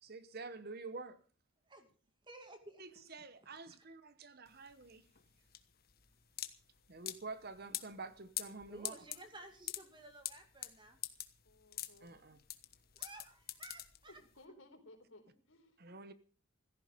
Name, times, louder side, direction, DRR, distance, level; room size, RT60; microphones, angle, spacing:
voice 1, 0.0-1.2 2.8-5.0 6.9-8.9 12.0-12.4 15.8-16.1, right 3 dB, 45° right, 1.0 m, -48 dB
voice 2, 2.2-2.8 8.7-11.0 12.9-14.2, right 2 dB, 20° right, 2.5 m, -54 dB
sound 1, 4.5-14.4, left 13 dB, 45° left, 1.2 m, -45 dB
voice 3, 11.4-12.2 14.1-15.8, left 1 dB, 70° left, 4.2 m, -59 dB
16.5 x 14.0 x 5.2 m
head